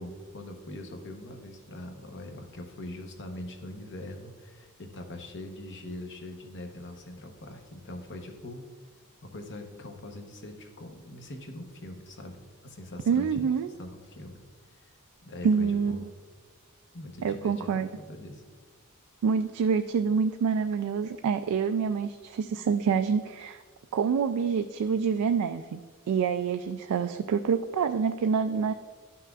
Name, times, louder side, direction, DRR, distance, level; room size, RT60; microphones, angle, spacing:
voice 1, 0.0-8.6 9.2-13.4 13.8-14.4 14.7-14.9 15.2-16.1 16.9-18.4, left 1 dB, 55° left, 4 dB, 0.9 m, -42 dB
voice 2, 13.1-13.7 15.4-16.1 17.2-17.9 19.2-23.6 23.9-25.8 26.1-28.7, right 6 dB, 75° right, 8 dB, 0.3 m, -26 dB
11.5 x 5.7 x 2.3 m, 1.5 s
head